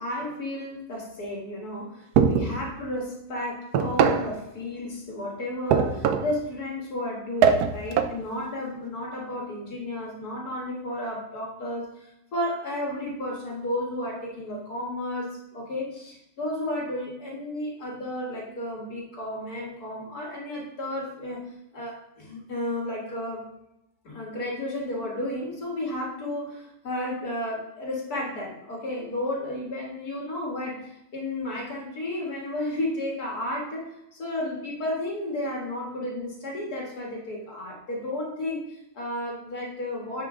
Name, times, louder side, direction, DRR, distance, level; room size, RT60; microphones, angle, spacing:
voice 1, 0.0-21.4 21.7-23.5 24.0-40.3, left 1 dB, 85° left, -2 dB, 2.2 m, -33 dB
sound 1, 2.2-2.6 3.7-4.3 5.7-6.4 7.4-8.2, right 7 dB, 90° right, 1.2 m, -22 dB
9.5 x 4.4 x 3.7 m, 0.84 s
omnidirectional pair, 1.6 m